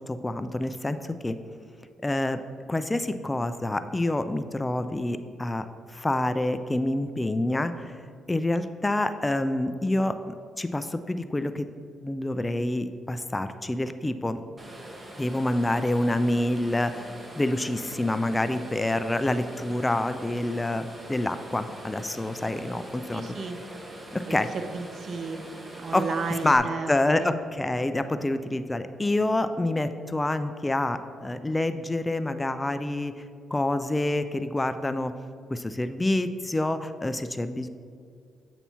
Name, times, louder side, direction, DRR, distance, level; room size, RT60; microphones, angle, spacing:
voice 1, 0.1-1.4 2.0-2.4 2.7-7.9 8.3-11.7 12.0-14.4 15.2-23.2 24.1-24.5 25.9-26.0 26.4-33.2 33.5-35.1 35.5-37.7, left 1 dB, 15° left, 10 dB, 0.3 m, -27 dB
sound 1, 14.6-26.6, right 1 dB, 25° right, 0.9 m, -43 dB
voice 2, 23.1-23.6 24.3-27.3, right 4 dB, 55° right, 7 dB, 0.5 m, -34 dB
8.2 x 3.0 x 5.5 m, 2.2 s
cardioid pair, 90°, 0 cm